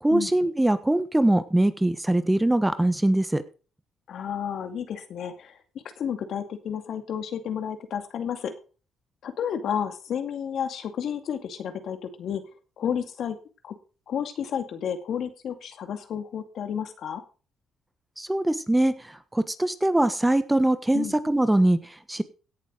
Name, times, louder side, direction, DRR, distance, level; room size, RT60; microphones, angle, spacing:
voice 1, 0.0-3.4 18.2-22.2, right 1 dB, 10° right, 12 dB, 1.3 m, -22 dB
voice 2, 4.1-5.6 6.0-8.5 9.2-12.4 12.8-13.4 13.6-13.7 14.1-17.2 20.9-21.2, left 8 dB, 65° left, 8 dB, 2.3 m, -31 dB
17.0 x 7.2 x 5.1 m, 0.35 s
cardioid pair, 90°, 0 cm